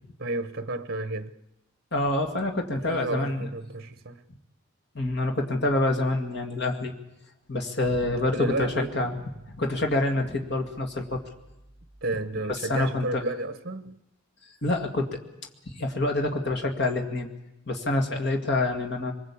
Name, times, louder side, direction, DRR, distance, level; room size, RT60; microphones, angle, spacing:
voice 1, 0.2-1.3 2.9-4.2 8.3-8.9 12.0-14.0, right 2 dB, 45° right, 0.9 m, -31 dB
voice 2, 1.9-3.5 4.9-6.9 7.5-9.1 9.5-11.2 12.7-13.2 14.6-15.2 15.7-17.3 17.7-19.1, left 2 dB, 55° left, 2.1 m, -26 dB
25.5 x 20.5 x 8.6 m
head